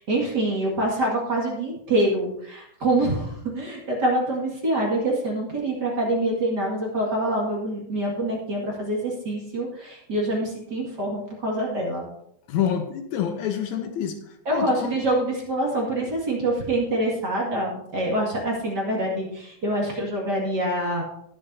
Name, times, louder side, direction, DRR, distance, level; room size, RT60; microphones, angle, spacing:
voice 1, 0.0-12.1 14.5-21.0, right 1 dB, 35° right, -2 dB, 2.3 m, -25 dB
voice 2, 12.5-14.2 14.5-15.0, left 9 dB, 75° left, 6 dB, 2.0 m, -27 dB
20.0 x 7.1 x 2.7 m, 0.75 s
omnidirectional pair, 3.6 m